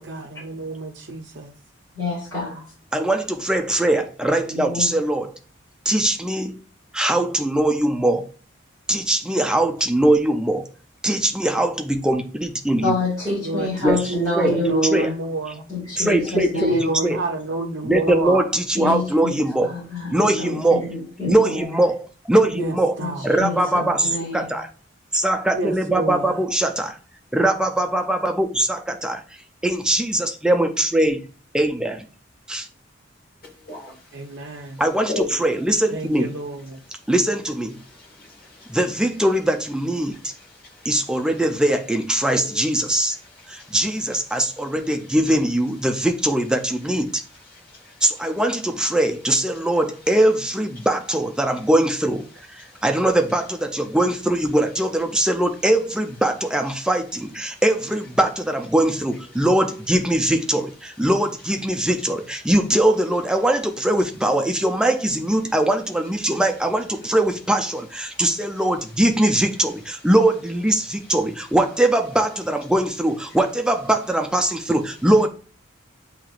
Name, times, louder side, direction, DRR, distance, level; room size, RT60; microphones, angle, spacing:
voice 1, 0.0-1.5 13.4-15.6 16.3-18.4 22.5-24.1 25.5-26.4 34.1-34.8 35.9-36.8, right 2 dB, 60° right, 0.5 m, -29 dB
voice 2, 1.9-2.6 4.5-4.9 12.8-15.1 15.7-16.9 18.8-19.4 19.6-21.7 23.0-23.7 24.0-24.5, left 2 dB, 20° left, 2.0 m, -26 dB
voice 3, 2.9-5.3 5.9-6.6 6.9-8.3 8.9-10.6 11.0-12.9 13.8-14.0 14.4-14.6 14.9-15.1 16.0-16.7 17.0-17.2 17.8-19.7 20.1-20.8 21.3-23.0 23.2-24.7 25.1-27.0 27.3-29.2 29.6-31.2 31.5-32.0 32.5-32.6 34.8-36.3 37.1-37.8 38.7-40.3 40.9-43.2 43.5-47.2 48.0-52.2 52.5-75.3, right 1 dB, 5° right, 0.3 m, -21 dB
voice 4, 33.4-34.0 35.1-35.5 37.8-38.8 40.4-40.9 42.2-42.6 43.1-43.8 44.3-44.6 47.5-48.0 52.6-52.8 57.5-57.6 61.8-61.9 68.1-68.2 70.8-70.9, left 2 dB, 45° left, 1.5 m, -37 dB
7.4 x 2.8 x 2.4 m
head